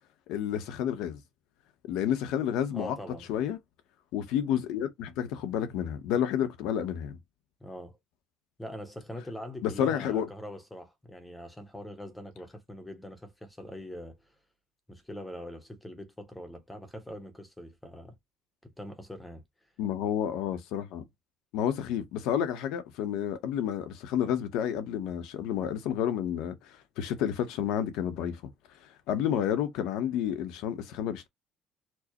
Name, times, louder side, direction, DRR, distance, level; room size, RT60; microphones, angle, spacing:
voice 1, 0.3-1.2 1.9-2.9 3.3-3.6 4.1-7.2 9.6-10.3 19.8-21.0 21.5-28.4 29.1-31.3, left 9 dB, 75° left, 0.8 m, -30 dB
voice 2, 2.7-3.3 7.6-8.0 8.6-14.3 14.9-18.1 18.6-19.4, equal, 5° left, 0.7 m, -43 dB
4.5 x 2.1 x 2.8 m
cardioid pair, 165°, 0 cm